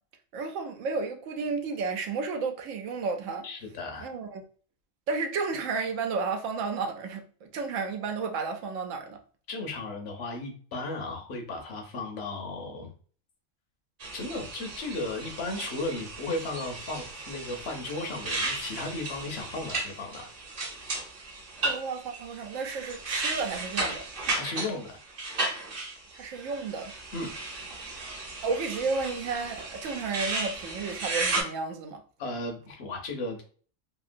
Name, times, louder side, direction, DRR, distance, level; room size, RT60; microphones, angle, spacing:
voice 1, 0.3-3.4 4.0-4.4 5.1-9.2 21.6-24.0 26.1-26.9 28.4-32.0, right 4 dB, 85° right, 1.0 m, -32 dB
voice 2, 3.4-4.1 9.5-12.9 14.1-20.3 24.3-25.0 27.1-27.3 32.2-33.4, left 2 dB, 60° left, 0.9 m, -35 dB
sound 1, 14.0-31.4, right 2 dB, 50° right, 0.9 m, -35 dB
2.9 x 2.7 x 2.5 m
omnidirectional pair, 1.3 m